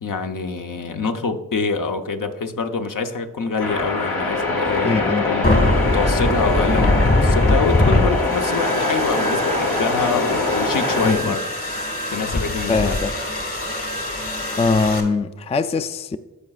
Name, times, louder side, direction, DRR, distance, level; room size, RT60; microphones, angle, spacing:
voice 1, 0.0-11.4 12.1-13.0, left 4 dB, 65° left, 0.8 m, -25 dB
sound 1, 3.6-11.1, left 2 dB, 85° left, 1.5 m, -23 dB
voice 2, 4.8-5.3 11.0-11.4 12.7-13.1 14.6-16.2, left 4 dB, 20° left, 0.3 m, -22 dB
sound 2, 5.4-15.0, left 1 dB, 40° left, 1.6 m, -22 dB
14.0 x 4.8 x 2.4 m
cardioid pair, 50°, 34 cm